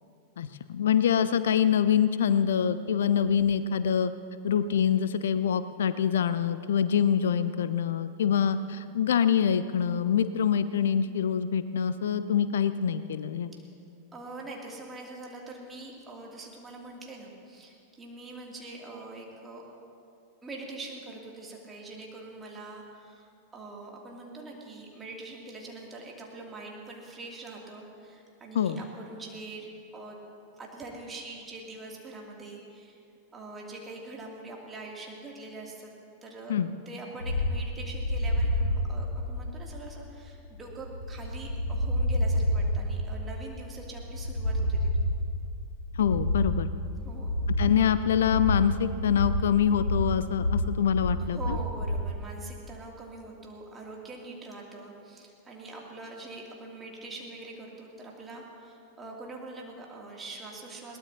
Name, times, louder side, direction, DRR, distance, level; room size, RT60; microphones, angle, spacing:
voice 1, 0.4-4.1 4.4-13.5 28.5-28.8 36.5-36.7 45.9-46.7 47.6-51.6, left 8 dB, 60° left, 13 dB, 0.4 m, -25 dB
voice 2, 14.1-19.6 20.4-29.7 29.9-30.2 30.6-33.0 33.3-35.9 36.2-36.5 36.9-45.1 47.0-47.3 51.2-61.0, right 2 dB, 15° right, -2 dB, 2.7 m, -43 dB
sound 1, 37.2-52.1, left 1 dB, 80° left, 0.9 m, -29 dB
21.5 x 18.5 x 2.9 m, 2.5 s
figure-of-eight pair, 90°, 0 cm